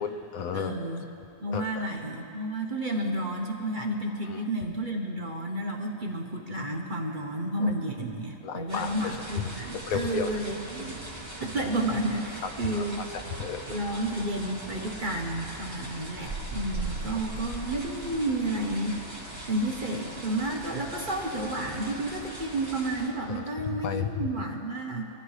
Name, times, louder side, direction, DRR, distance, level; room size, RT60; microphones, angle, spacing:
voice 1, 0.0-0.7 1.5-1.9 4.3-4.4 7.6-7.7 8.4-9.2 9.4-9.5 9.9-10.3 12.7-13.6 23.3-23.4 23.8-24.1 24.4-24.5, left 7 dB, 70° left, 7 dB, 1.1 m, -33 dB
voice 2, 0.5-1.0 1.4-11.0 11.4-13.1 13.7-19.0 19.5-25.0, right 1 dB, 35° right, 1 dB, 1.0 m, -31 dB
sound 1, 8.7-23.1, right 2 dB, 15° right, 2.4 m, -40 dB
22.5 x 14.0 x 3.3 m, 2.7 s
omnidirectional pair, 1.6 m